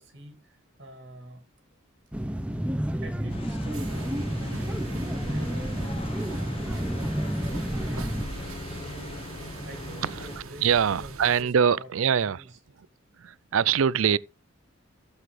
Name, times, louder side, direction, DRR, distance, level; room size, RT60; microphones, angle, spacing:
voice 1, 0.0-1.4 3.0-5.8 6.3-8.1 8.6-9.3 9.6-12.6, right 1 dB, 50° right, 2.1 m, -46 dB
sound 1, 2.1-8.2, equal, 5° right, 0.6 m, -30 dB
sound 2, 3.3-10.4, left 2 dB, 25° left, 1.0 m, -40 dB
sound 3, 3.7-11.4, right 2 dB, 85° right, 1.7 m, -40 dB
voice 2, 10.6-12.4 13.2-14.2, right 7 dB, 70° right, 0.4 m, -23 dB
15.0 x 7.1 x 3.3 m
head